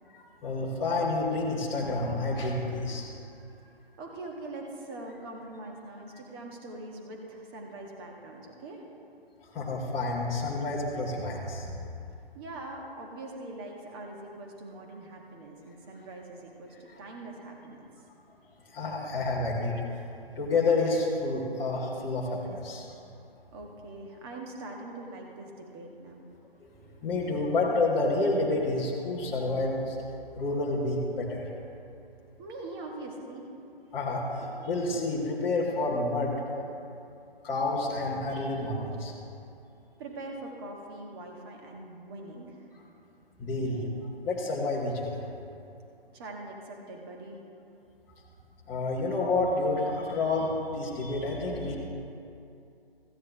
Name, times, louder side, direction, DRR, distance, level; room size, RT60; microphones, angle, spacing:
voice 1, 0.1-3.1 9.4-11.7 18.7-19.8 20.3-22.9 26.6-26.7 27.0-30.0 30.3-31.5 33.9-36.3 37.4-39.1 43.4-43.9 44.2-45.2 48.7-51.8, left 2 dB, 10° left, -8 dB, 0.9 m, -29 dB
voice 2, 4.0-8.8 12.3-17.9 23.5-26.2 32.4-33.5 40.0-42.7 46.1-47.4, right 2 dB, 25° right, 0 dB, 1.3 m, -42 dB
15.0 x 9.6 x 3.3 m, 2.6 s
figure-of-eight pair, 145°, 30 cm